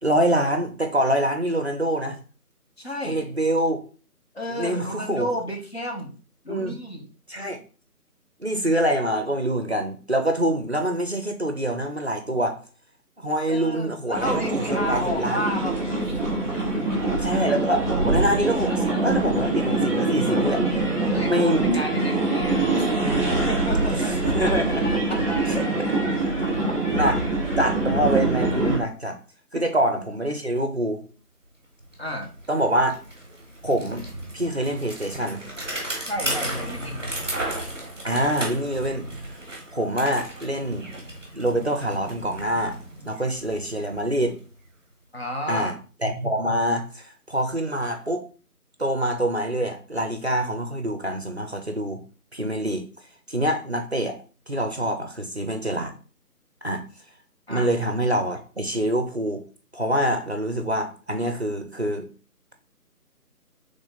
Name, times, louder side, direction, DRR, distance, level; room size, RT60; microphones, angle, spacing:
voice 1, 0.0-2.2 3.0-3.8 4.5-5.3 6.5-6.8 7.3-7.6 8.4-12.6 13.2-14.6 14.9-15.4 17.2-20.7 21.2-21.6 24.0-24.8 25.6-25.7 26.9-27.2 27.6-29.2 29.5-31.0 32.5-32.9 33.6-34.0 34.3-35.4 38.0-39.1 39.7-41.0 41.3-42.8 43.0-44.4 45.5-45.7 46.0-48.2 48.8-52.0 52.3-52.8 53.3-54.2 54.5-55.9 56.6-56.8 57.5-59.4 59.7-62.1, right 1 dB, 45° right, 0.5 m, -25 dB
voice 2, 2.8-3.2 4.3-6.2 6.4-7.1 13.5-15.8 16.5-17.2 21.1-22.9 23.3-24.3 25.1-25.2 29.5-29.6 32.0-32.3 36.0-37.1 45.1-45.7 57.5-57.7, equal, 40° left, 0.8 m, -32 dB
sound 1, 14.1-28.8, right 2 dB, 10° left, 1.1 m, -24 dB
Bicycle, 31.4-31.5 31.8-44.7, right 1 dB, 20° right, 0.9 m, -35 dB
3.5 x 3.3 x 4.0 m
figure-of-eight pair, 160°, 47 cm